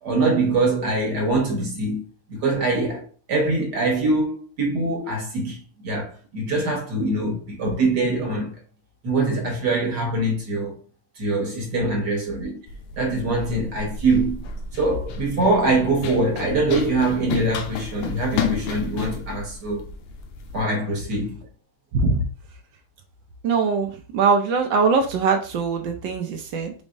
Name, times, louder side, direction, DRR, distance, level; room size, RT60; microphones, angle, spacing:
voice 1, 0.0-2.0 2.3-8.5 9.0-10.7 11.2-12.6 13.0-14.4 14.7-19.8 20.5-21.4, right 2 dB, 55° right, 1.7 m, -23 dB
Run, 12.7-20.6, left 5 dB, 80° left, 1.5 m, -32 dB
voice 2, 21.9-22.2 23.4-26.7, right 4 dB, 70° right, 1.2 m, -22 dB
5.1 x 3.4 x 2.6 m
omnidirectional pair, 2.4 m